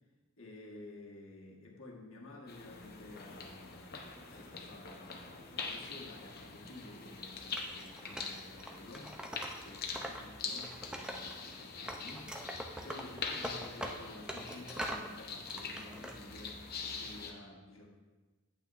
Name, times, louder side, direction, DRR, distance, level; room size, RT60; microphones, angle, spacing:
voice 1, 0.4-9.2 9.6-12.3 12.7-17.9, left 2 dB, 70° left, -1 dB, 1.5 m, -52 dB
sound 1, 2.5-17.3, left 4 dB, 45° left, 0.8 m, -44 dB
Wood, 7.5-10.2 10.5-11.5 11.9-15.1 15.5-16.1, right 1 dB, 5° right, 0.5 m, -43 dB
8.7 x 8.7 x 2.5 m, 1.3 s
head